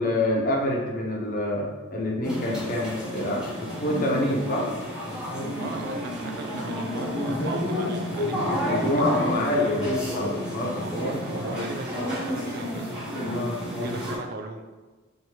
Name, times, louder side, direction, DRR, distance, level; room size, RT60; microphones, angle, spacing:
voice 1, 0.0-4.7 7.2-7.4 8.4-11.1 13.2-13.6, left 1 dB, 45° left, -1 dB, 0.7 m, -27 dB
sound 1, 2.2-14.2, equal, 5° right, 1.2 m, -30 dB
voice 2, 5.6-8.9 9.2-9.5 10.8-12.9 13.7-14.6, right 4 dB, 50° right, 5 dB, 0.3 m, -38 dB
4.7 x 2.7 x 2.8 m, 1.3 s
head